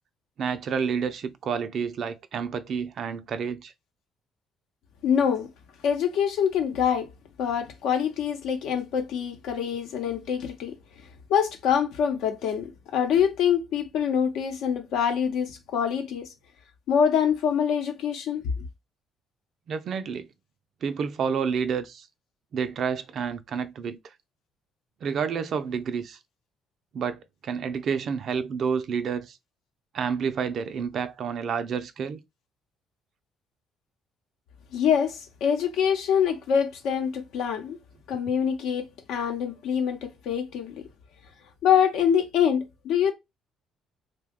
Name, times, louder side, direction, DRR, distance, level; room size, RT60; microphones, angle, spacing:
voice 1, 0.4-3.7 19.7-20.3 20.8-22.1 22.5-24.0 25.0-26.2 26.9-29.4 29.9-32.2, right 6 dB, 55° right, 0.5 m, -29 dB
voice 2, 5.0-5.5 5.8-7.1 7.4-10.8 11.3-16.3 16.9-18.5 34.7-37.8 38.1-40.8 41.6-43.1, left 8 dB, 75° left, 0.8 m, -25 dB
2.6 x 2.2 x 3.6 m
cardioid pair, 90°, 0 cm